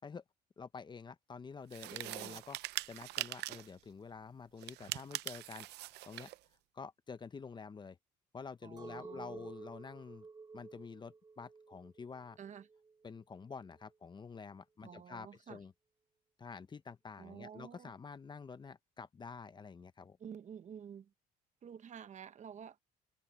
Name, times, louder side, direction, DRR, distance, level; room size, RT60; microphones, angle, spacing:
voice 1, 0.6-2.6 2.9-6.3 6.7-8.0 8.3-10.3 10.5-12.4 13.0-15.7 16.4-20.2, left 5 dB, 25° left, 0.8 m, -48 dB
sound 1, 1.7-3.7 4.6-6.4, right 17 dB, 80° right, 0.6 m, -42 dB
voice 2, 1.9-2.4 8.6-9.5 12.4-12.7 14.8-15.6 17.2-17.9 20.2-21.1 21.6-22.8, right 8 dB, 45° right, 1.1 m, -50 dB
Chink clink, 8.8-13.9, right 4 dB, 25° right, 1.4 m, -53 dB
cardioid pair, 110°, 17 cm